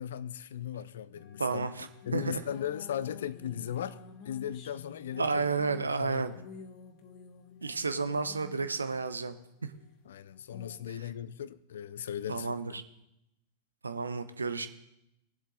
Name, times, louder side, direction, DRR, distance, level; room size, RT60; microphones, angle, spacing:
voice 1, 0.0-4.0 4.3-5.4 5.8-6.4 10.0-12.8, left 10 dB, 60° left, 0.5 m, -38 dB
sound 1, 1.1-10.8, left 6 dB, 40° left, 1.3 m, -52 dB
voice 2, 1.4-2.4 5.2-6.3 7.6-9.4 12.3-12.8 13.8-14.7, right 4 dB, 75° right, 0.8 m, -31 dB
19.0 x 7.5 x 4.0 m
figure-of-eight pair, 90°, 0 cm